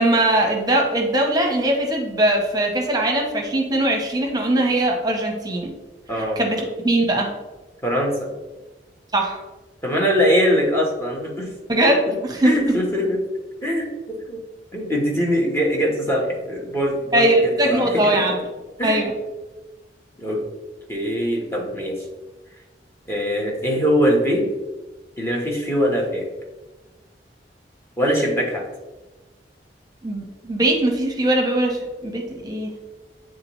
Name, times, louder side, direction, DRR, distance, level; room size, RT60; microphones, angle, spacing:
voice 1, 0.0-5.7 6.4-7.3 9.1-9.4 11.7-12.7 17.1-18.3 18.8-19.1 30.0-32.7, right 1 dB, 25° right, 1 dB, 0.9 m, -20 dB
voice 2, 6.1-6.4 7.8-8.3 9.8-11.5 12.1-12.2 12.4-13.2 13.6-14.4 14.7-18.4 18.8-19.0 20.2-20.4 20.9-22.0 23.1-24.4 25.2-26.3 28.0-28.6, equal, 15° left, -1 dB, 1.1 m, -22 dB
8.5 x 3.7 x 3.0 m, 1.2 s
head